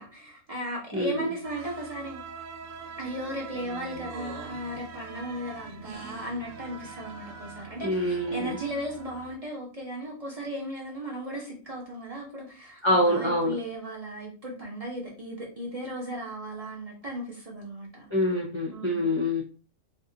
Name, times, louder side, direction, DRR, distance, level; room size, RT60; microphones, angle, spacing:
voice 1, 0.0-2.2 3.0-18.1 18.7-19.1, equal, 35° right, -3 dB, 0.7 m, -36 dB
voice 2, 0.9-1.3 7.8-8.6 12.8-13.5 18.1-19.4, left 1 dB, 30° left, -4 dB, 0.5 m, -25 dB
sound 1, 1.4-9.4, right 4 dB, 75° right, 0.9 m, -43 dB
2.6 x 2.4 x 3.7 m, 0.36 s
omnidirectional pair, 1.4 m